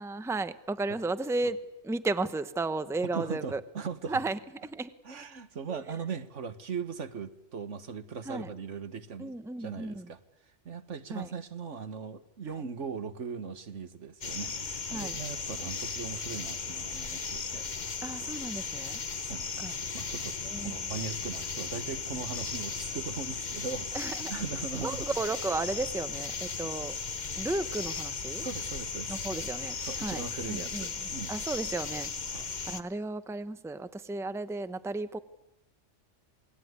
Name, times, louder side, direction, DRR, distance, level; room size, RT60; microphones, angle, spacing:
voice 1, 0.0-1.6 1.8-3.6 4.1-4.9 5.7-5.8 8.3-8.5 9.2-10.1 11.1-11.3 14.9-15.2 18.0-19.0 19.6-19.7 20.4-20.7 23.9-24.3 24.8-26.9 27.4-28.5 29.1-30.9 31.3-32.1 32.7-35.2, right 2 dB, 5° right, 12 dB, 0.8 m, -34 dB
voice 2, 3.1-4.2 5.0-10.2 10.7-17.6 19.2-25.1 28.4-29.3 29.8-31.4 32.2-32.5, right 5 dB, 75° right, 11 dB, 1.7 m, -39 dB
sound 1, 14.2-32.8, left 5 dB, 40° left, 1.1 m, -36 dB
27.5 x 20.0 x 9.6 m, 0.96 s
omnidirectional pair, 1.2 m